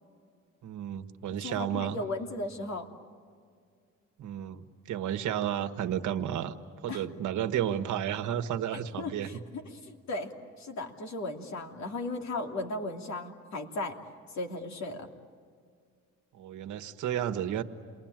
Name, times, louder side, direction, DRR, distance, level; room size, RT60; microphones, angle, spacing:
voice 1, 0.6-2.0 4.2-6.6 6.8-9.4 16.3-17.6, right 10 dB, 80° right, 7 dB, 1.5 m, -32 dB
voice 2, 1.4-2.9 6.9-7.0 8.7-10.3 10.6-14.0 14.3-15.1, left 2 dB, 65° left, 3 dB, 3.0 m, -36 dB
29.0 x 22.0 x 9.0 m, 2.2 s
cardioid pair, 90°, 30 cm